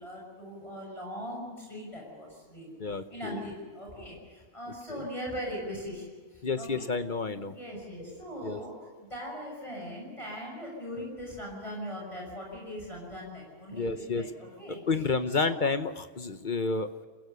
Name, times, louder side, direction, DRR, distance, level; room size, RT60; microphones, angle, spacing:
voice 1, 0.0-2.8 3.1-6.9 7.5-8.7 9.0-14.8 15.4-15.6, equal, 25° left, -2 dB, 6.4 m, -40 dB
voice 2, 2.8-3.5 4.9-5.0 6.4-7.5 8.4-8.6 13.7-14.2 14.7-17.1, left 4 dB, 45° left, 10 dB, 1.0 m, -30 dB
28.5 x 16.0 x 6.8 m, 1.5 s
omnidirectional pair, 1.3 m